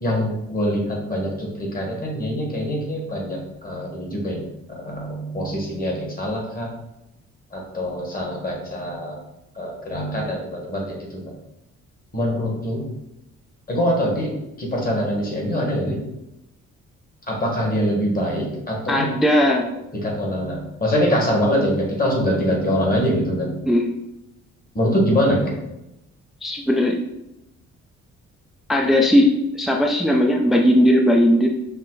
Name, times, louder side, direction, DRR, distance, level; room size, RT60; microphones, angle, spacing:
voice 1, 0.0-4.4 4.7-6.7 7.5-9.2 9.6-10.9 11.1-11.2 12.1-12.8 13.7-14.3 14.6-16.0 17.3-19.1 20.0-23.5 24.8-25.5, equal, 30° left, -2 dB, 1.6 m, -23 dB
voice 2, 18.9-19.7 23.7-23.9 26.4-27.0 28.7-31.5, left 1 dB, ahead, 1 dB, 0.4 m, -17 dB
5.6 x 2.1 x 3.9 m, 0.87 s
cardioid pair, 90°, 30 cm